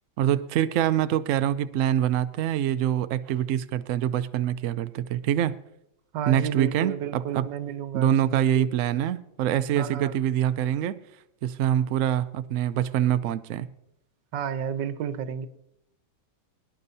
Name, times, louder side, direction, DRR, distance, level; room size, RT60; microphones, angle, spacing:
voice 1, 0.2-5.6 6.3-7.4 7.9-11.0 11.4-13.7, right 11 dB, 70° right, 0.7 m, -25 dB
voice 2, 6.1-8.7 9.8-10.1 14.3-15.5, right 9 dB, 85° right, 1.4 m, -32 dB
23.0 x 10.5 x 2.7 m
omnidirectional pair, 1.9 m